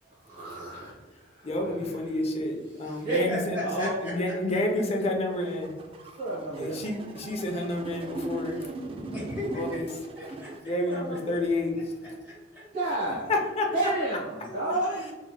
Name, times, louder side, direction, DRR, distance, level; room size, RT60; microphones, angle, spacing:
voice 1, 0.0-2.2 2.7-3.2 3.5-4.0 6.2-6.8 10.8-11.4 12.7-13.3 13.7-15.0, right 2 dB, 50° right, -9 dB, 1.1 m, -32 dB
voice 2, 1.4-5.7 6.6-8.7 9.5-9.9 10.7-11.9 13.3-13.7, left 1 dB, 35° left, 1 dB, 0.5 m, -29 dB
voice 3, 2.8-4.1 6.5-6.7 9.1-9.8 10.2-10.5 12.2-12.6 14.4-15.1, equal, 10° right, -9 dB, 1.3 m, -36 dB
sound 1, 5.3-10.6, right 2 dB, 30° right, 0.3 m, -38 dB
3.5 x 3.3 x 2.3 m, 1.3 s
head